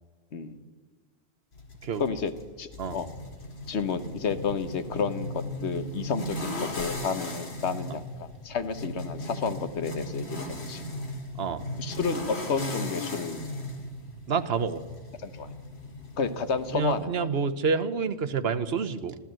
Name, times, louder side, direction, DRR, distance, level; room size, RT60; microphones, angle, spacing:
sound 1, 1.5-17.0, left 1 dB, 75° left, 2.3 m, -37 dB
voice 1, 2.0-2.3 2.6-3.1 3.7-10.9 11.8-13.4 15.2-15.5 16.2-17.3, left 5 dB, 90° left, 11 dB, 1.3 m, -31 dB
voice 2, 14.3-14.8 16.7-19.2, right 5 dB, 70° right, 10 dB, 1.1 m, -28 dB
14.5 x 13.0 x 7.6 m, 1.4 s
omnidirectional pair, 1.1 m